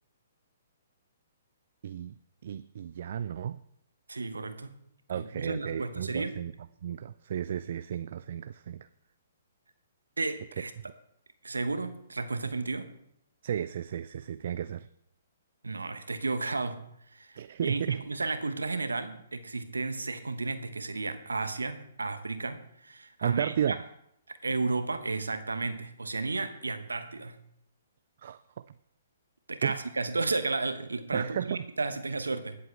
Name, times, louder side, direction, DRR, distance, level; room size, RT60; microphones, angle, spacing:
voice 1, 1.8-2.1 2.4-3.6 5.1-6.5 6.8-8.9 13.4-14.9 17.4-18.0 23.2-23.8 28.2-28.7 29.6-29.8 31.1-31.6, right 9 dB, 55° right, 14 dB, 0.3 m, -33 dB
voice 2, 4.1-4.8 5.1-6.3 10.2-10.7 11.4-12.9 15.6-16.8 17.1-23.8 24.3-27.4 29.5-32.6, right 3 dB, 85° right, 10 dB, 1.0 m, -33 dB
19.5 x 7.8 x 3.3 m, 0.75 s
figure-of-eight pair, 125°, 0 cm